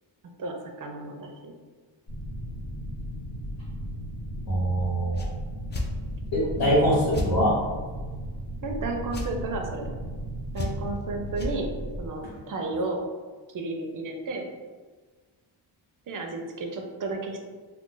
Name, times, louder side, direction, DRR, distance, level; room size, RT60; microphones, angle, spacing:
voice 1, 0.4-1.5 6.4-6.6 8.6-9.9 10.5-11.7 12.0-13.0 13.5-14.5 16.1-17.4, right 3 dB, 45° right, 3 dB, 0.5 m, -33 dB
sound 1, 2.1-12.1, right 1 dB, 70° left, 1.4 m, -36 dB
voice 2, 4.5-5.3 6.3-7.5, equal, 55° left, -7 dB, 1.2 m, -23 dB
sound 2, 5.1-5.3 5.7-5.9 7.1-7.3 9.1-9.3 10.5-11.0 11.3-11.5, left 2 dB, 25° left, 0.3 m, -31 dB
2.4 x 2.3 x 3.8 m, 1.4 s
cardioid pair, 110°, 48 cm